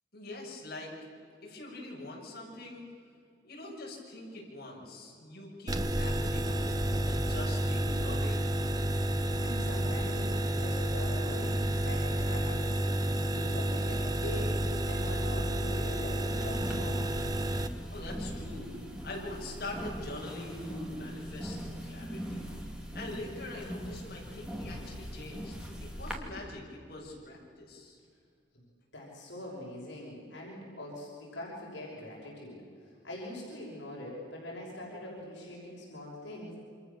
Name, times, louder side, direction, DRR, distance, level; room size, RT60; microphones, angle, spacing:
voice 1, 0.1-0.9 1.4-2.8 3.4-6.8 7.1-8.6 17.9-18.7 19.0-25.5 25.8-28.0, left 2 dB, 50° left, -4 dB, 7.1 m, -43 dB
sound 1, 5.7-17.7, right 1 dB, 20° right, 1.1 m, -30 dB
voice 2, 9.4-12.8 13.2-17.1 28.5-28.6 28.9-36.6, left 1 dB, 70° left, -3 dB, 6.3 m, -43 dB
sound 2, 16.4-26.1, equal, 5° right, 2.9 m, -41 dB
28.5 x 26.0 x 7.1 m, 2.4 s
head